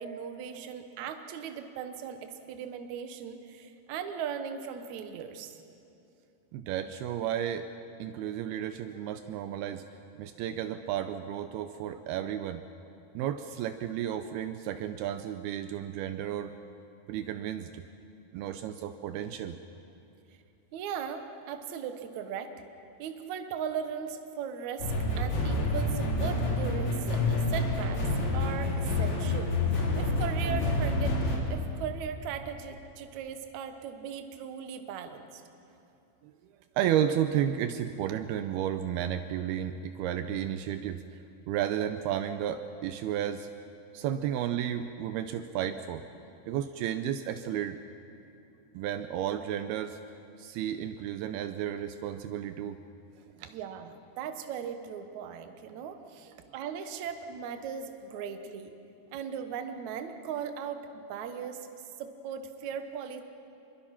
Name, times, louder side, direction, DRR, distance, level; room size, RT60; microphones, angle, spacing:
voice 1, 0.0-5.6 20.7-22.5 23.0-24.9 25.2-28.0 28.3-31.1 31.5-35.4 53.5-58.7 59.1-61.7 62.0-63.2, right 7 dB, 65° right, 7 dB, 2.0 m, -38 dB
voice 2, 6.5-7.7 8.0-9.8 10.1-12.6 13.1-16.6 17.1-17.8 18.3-19.6 36.2-36.3 36.8-41.0 41.5-43.5 43.9-46.0 46.5-47.8 48.7-50.0 50.4-52.8 53.4-53.6, right 10 dB, 80° right, 9 dB, 2.5 m, -32 dB
sound 1, 24.8-31.4, left 2 dB, 45° left, 3.9 m, -28 dB
26.5 x 22.5 x 5.8 m, 2.7 s
omnidirectional pair, 4.8 m